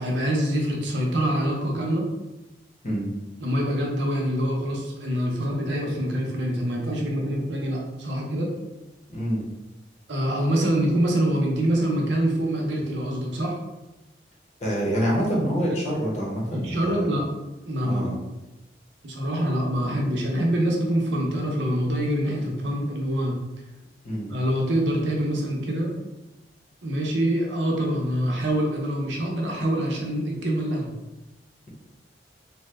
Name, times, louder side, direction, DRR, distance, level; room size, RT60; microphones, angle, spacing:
voice 1, 0.0-2.1 3.4-8.5 10.1-13.6 16.5-17.2 17.6-18.2 19.0-23.4 24.3-25.9 26.8-30.9, right 1 dB, 80° right, -1 dB, 0.7 m, -25 dB
voice 2, 9.1-9.4 14.6-17.1 17.8-18.1 24.0-24.3, equal, 40° left, -4 dB, 0.8 m, -26 dB
2.8 x 2.1 x 3.4 m, 1.0 s
head